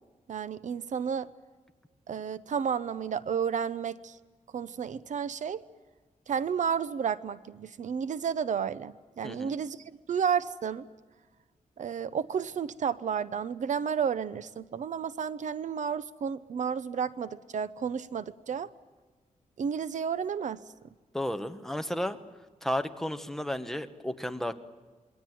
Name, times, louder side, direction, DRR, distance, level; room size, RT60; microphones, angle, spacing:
voice 1, 0.3-1.3 2.1-4.2 4.5-5.6 6.3-9.8 10.1-10.9 11.8-18.7 19.6-20.6, right 7 dB, 65° right, 15 dB, 0.8 m, -31 dB
voice 2, 21.1-22.2 22.6-24.5, left 1 dB, 5° left, 7 dB, 1.1 m, -33 dB
27.0 x 22.5 x 9.3 m, 1.3 s
wide cardioid pair, 160°, 14 cm